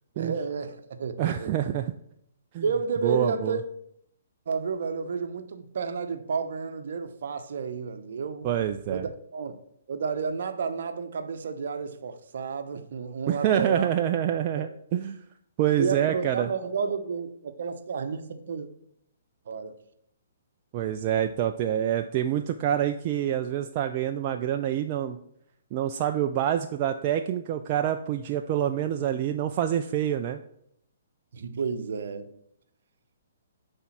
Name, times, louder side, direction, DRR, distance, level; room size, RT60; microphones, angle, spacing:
voice 1, 0.1-1.5 2.6-3.6 4.5-8.6 8.9-9.6 9.9-14.0 14.5-14.7 15.8-18.7 19.5-19.8 31.3-32.3, right 5 dB, 55° right, 0.8 m, -31 dB
voice 2, 1.2-1.9 2.5-2.6 3.0-3.6 8.4-9.0 13.3-15.2 15.6-16.5 20.7-25.2 25.7-30.4, right 10 dB, 35° right, 0.4 m, -26 dB
9.4 x 3.6 x 5.7 m
figure-of-eight pair, 125°, 0 cm